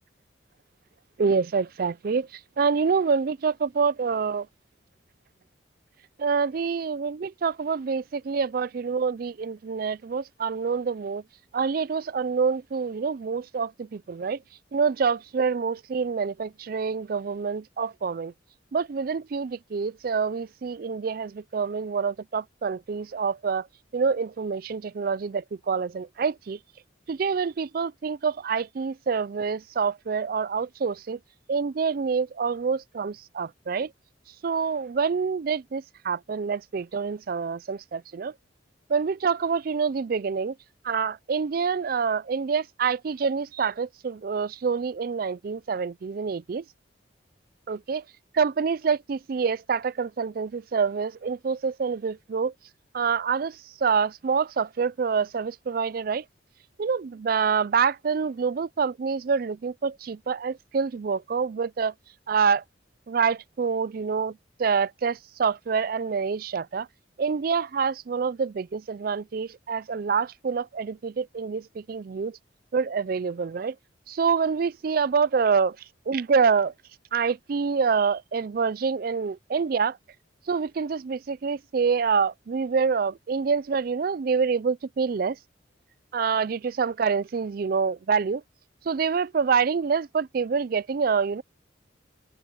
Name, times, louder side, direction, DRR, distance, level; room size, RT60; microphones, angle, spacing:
voice 1, 1.2-2.3 2.6-4.5 6.2-11.2 11.5-14.4 14.7-18.3 18.7-23.7 23.9-26.6 27.1-31.2 31.5-33.9 34.4-38.3 38.9-40.5 40.8-46.6 47.7-48.0 48.3-52.5 52.9-56.2 56.8-61.9 62.3-62.6 63.1-66.9 67.2-72.4 72.7-73.7 74.1-75.8 76.1-76.7 77.1-80.0 80.5-85.4 86.1-88.4 88.9-91.4, right 5 dB, 50° right, 0.4 m, -26 dB
head